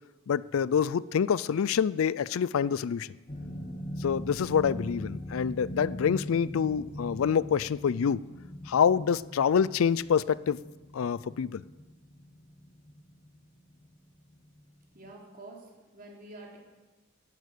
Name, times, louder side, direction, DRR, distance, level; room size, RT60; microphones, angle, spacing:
voice 1, 0.3-3.1 4.0-8.2 8.7-10.6 10.9-11.6, left 7 dB, 80° left, 0.4 m, -26 dB
sound 1, 3.3-14.0 14.3-14.6 15.0-15.1, equal, 30° left, 1.2 m, -41 dB
voice 2, 14.9-16.6, right 2 dB, 45° right, 3.5 m, -48 dB
11.5 x 11.0 x 8.3 m
head